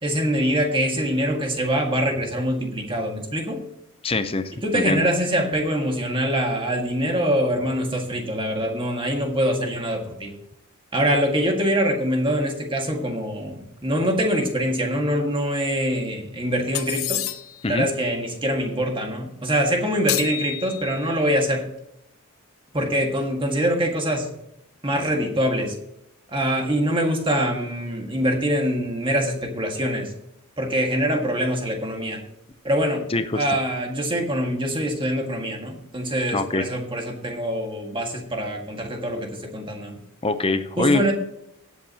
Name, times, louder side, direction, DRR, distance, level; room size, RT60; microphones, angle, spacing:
voice 1, 0.0-3.6 4.6-10.3 10.9-17.2 17.7-21.6 22.7-24.3 24.8-25.7 26.3-30.1 30.6-32.2 32.6-33.0 33.3-40.0 40.8-41.1, equal, 25° right, 2 dB, 1.7 m, -24 dB
voice 2, 4.0-5.1 17.6-17.9 33.1-33.6 36.3-36.6 40.2-41.1, left 3 dB, 25° left, 10 dB, 0.6 m, -23 dB
sound 1, 16.7-17.7 20.1-21.2, left 14 dB, 65° left, 0.7 m, -29 dB
18.0 x 8.3 x 2.9 m, 0.78 s
head